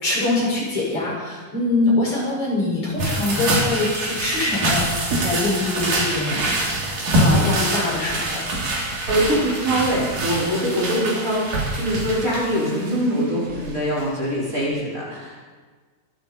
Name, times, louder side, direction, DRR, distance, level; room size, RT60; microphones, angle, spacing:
voice 1, 0.0-6.4 7.2-8.5, left 2 dB, 45° left, -4 dB, 6.2 m, -23 dB
sound 1, 3.0-13.2 13.5-13.7 14.0-14.1, right 1 dB, 75° right, 4.9 m, -24 dB
voice 2, 8.9-15.5, equal, 25° right, -6 dB, 5.2 m, -23 dB
25.0 x 12.5 x 4.2 m, 1.4 s
omnidirectional pair, 3.7 m